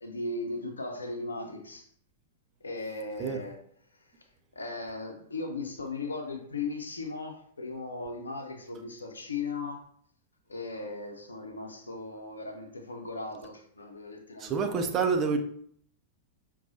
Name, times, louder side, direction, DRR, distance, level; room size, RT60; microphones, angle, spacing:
voice 1, 0.0-1.9 2.6-3.6 4.6-9.9 10.5-14.7, left 3 dB, 80° left, 4 dB, 0.7 m, -37 dB
voice 2, 14.4-15.4, right 5 dB, 30° right, 5 dB, 0.6 m, -27 dB
5.9 x 2.3 x 2.7 m, 0.62 s
figure-of-eight pair, 95°, 0 cm